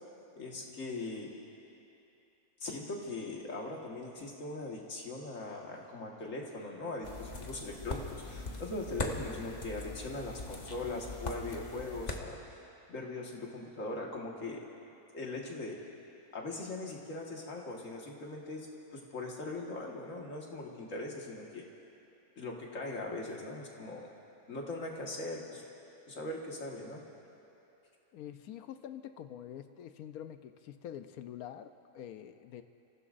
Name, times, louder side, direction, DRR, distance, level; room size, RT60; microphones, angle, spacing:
voice 1, 0.3-1.3 2.6-12.4 12.9-14.7 15.1-15.8 16.3-18.7 18.9-21.6 22.4-24.1 24.5-25.6 26.1-27.0, left 2 dB, 55° left, -1 dB, 2.0 m, -40 dB
sound 1, 7.0-12.2, left 3 dB, 35° left, 1.0 m, -41 dB
voice 2, 28.1-32.6, left 10 dB, 75° left, 10 dB, 1.1 m, -46 dB
29.5 x 15.5 x 2.6 m, 2.8 s
omnidirectional pair, 1.6 m